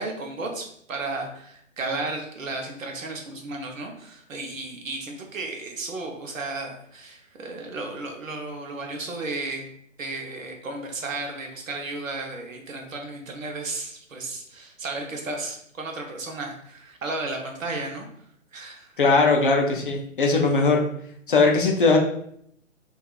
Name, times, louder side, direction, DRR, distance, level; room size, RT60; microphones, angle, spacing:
voice 1, 0.0-9.7 10.0-18.1 18.5-18.9, right 2 dB, 75° right, 2 dB, 0.8 m, -34 dB
voice 2, 19.0-20.8 21.3-22.0, left 3 dB, 45° left, 1 dB, 0.4 m, -19 dB
2.7 x 2.4 x 2.3 m, 0.68 s
figure-of-eight pair, 135°, 40 cm